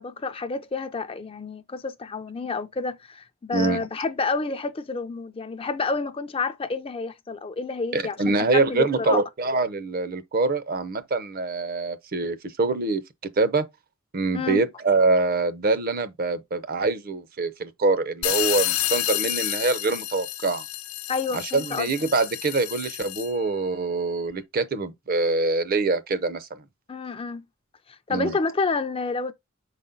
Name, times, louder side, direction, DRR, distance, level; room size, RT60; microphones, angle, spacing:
voice 1, 0.0-9.2 14.3-14.6 21.1-21.9 26.9-27.4 28.1-29.3, left 4 dB, 25° left, 0.4 m, -29 dB
voice 2, 3.5-3.8 7.9-13.0 13.4-13.7 14.1-20.6 21.3-26.5 28.1-28.3, right 3 dB, 45° right, 0.7 m, -24 dB
sound 1, 18.2-23.4, left 14 dB, 85° left, 0.6 m, -29 dB
6.1 x 4.1 x 3.8 m
head